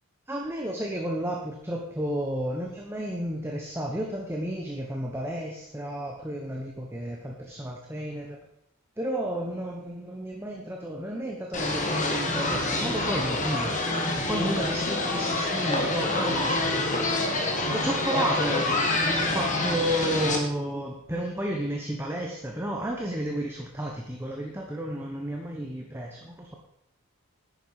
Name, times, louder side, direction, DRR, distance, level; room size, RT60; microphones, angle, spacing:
voice 1, 0.3-8.4 9.0-13.7 14.2-17.1 17.7-18.8 19.1-26.6, right 1 dB, 10° right, 0 dB, 1.2 m, -32 dB
sound 1, 11.5-20.4, left 2 dB, 35° left, 1.8 m, -27 dB
11.0 x 9.3 x 4.9 m, 0.77 s
head